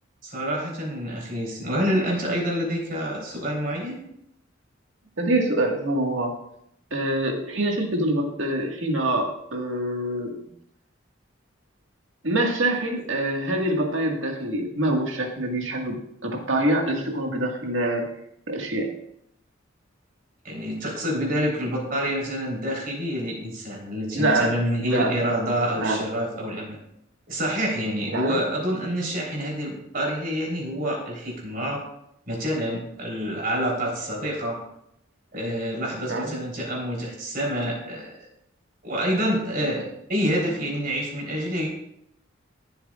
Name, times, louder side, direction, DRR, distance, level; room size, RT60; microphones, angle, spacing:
voice 1, 0.2-4.0 20.4-26.8 27.3-31.8 32.3-34.6 35.3-38.2 38.8-41.7, equal, 50° right, -2 dB, 3.7 m, -27 dB
voice 2, 5.2-6.3 6.9-10.4 12.2-16.0 16.2-18.0 18.5-18.9 24.1-24.5 24.9-25.1 25.7-26.0 28.1-28.4 36.1-36.3, right 1 dB, 80° right, 1 dB, 1.8 m, -25 dB
14.0 x 7.8 x 2.4 m, 0.77 s
head